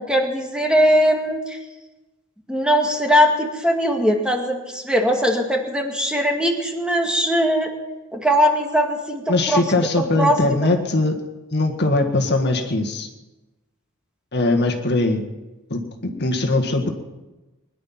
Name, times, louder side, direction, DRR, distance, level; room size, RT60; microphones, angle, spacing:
voice 1, 0.0-1.6 2.5-7.7 8.1-10.7, equal, 5° right, 2 dB, 1.9 m, -20 dB
voice 2, 9.3-11.1 11.5-13.1 14.3-15.2 15.7-16.9, left 2 dB, 50° left, 3 dB, 1.7 m, -21 dB
21.5 x 11.5 x 5.9 m, 1.1 s
head